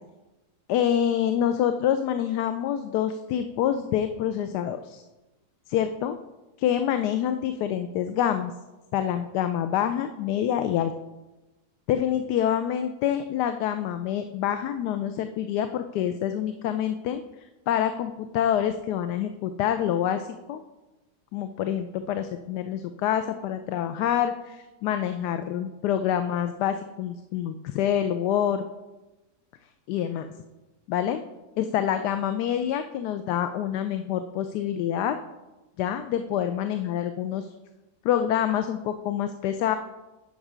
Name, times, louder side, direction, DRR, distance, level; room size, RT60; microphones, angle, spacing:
voice 1, 0.7-5.0 5.7-6.2 6.6-8.5 8.9-10.9 11.9-20.6 21.3-28.7 29.9-30.3 30.9-31.2 31.6-35.2 35.8-37.5 38.0-39.8, left 10 dB, 85° left, 9 dB, 1.2 m, -26 dB
11.0 x 6.0 x 4.9 m, 1.1 s
omnidirectional pair, 1.7 m